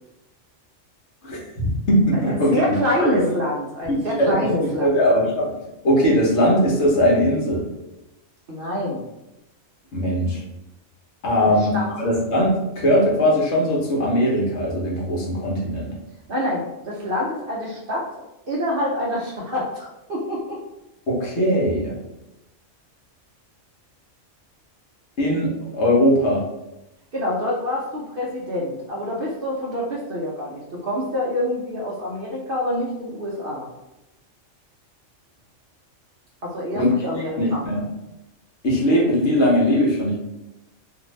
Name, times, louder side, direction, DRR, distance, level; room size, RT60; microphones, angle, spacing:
voice 1, 1.2-3.1 3.9-5.5 5.8-7.7 9.9-10.4 11.2-15.9 21.1-22.0 25.2-26.4 36.7-36.9 37.4-37.8 38.6-40.2, equal, 60° left, -4 dB, 1.1 m, -20 dB
voice 2, 2.1-5.0 8.5-9.0 11.4-11.9 16.3-18.0 18.5-20.6 27.1-33.7 36.4-37.7, left 1 dB, 55° right, -4 dB, 0.7 m, -26 dB
2.6 x 2.5 x 3.1 m, 0.93 s
omnidirectional pair, 1.3 m